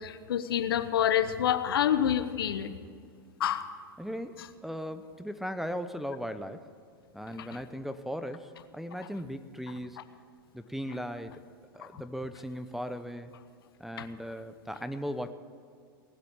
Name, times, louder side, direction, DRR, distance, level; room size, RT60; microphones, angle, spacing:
voice 1, 0.0-2.7 3.4-3.6, left 10 dB, 80° left, 11 dB, 1.0 m, -27 dB
voice 2, 4.0-6.7 7.1-10.1 10.5-11.4 11.7-13.3 13.8-15.3, equal, ahead, 11 dB, 0.8 m, -37 dB
18.5 x 7.8 x 8.7 m, 2.1 s
hypercardioid pair, 105°, 12 cm